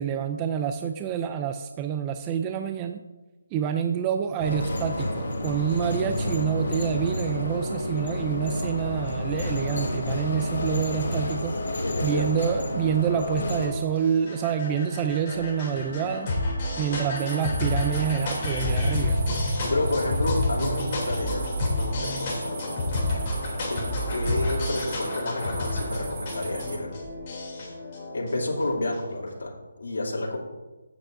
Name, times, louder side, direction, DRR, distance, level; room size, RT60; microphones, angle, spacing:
voice 1, 0.0-3.0 3.5-11.6 12.0-16.3 16.8-19.2, right 8 dB, 15° right, 6 dB, 0.4 m, -27 dB
sound 1, 4.4-13.7, left 1 dB, 55° left, 2.7 m, -30 dB
voice 2, 11.8-12.2 19.7-21.5 21.7-22.8 23.7-26.9 28.1-29.5 29.8-30.4, left 2 dB, 70° left, -4 dB, 2.8 m, -30 dB
sound 2, 13.6-29.1, left 1 dB, 30° left, 3.0 m, -29 dB
sound 3, 17.1-26.8, right 4 dB, 35° right, 2.0 m, -40 dB
16.0 x 8.1 x 2.7 m, 1.1 s
hypercardioid pair, 165°, 0 cm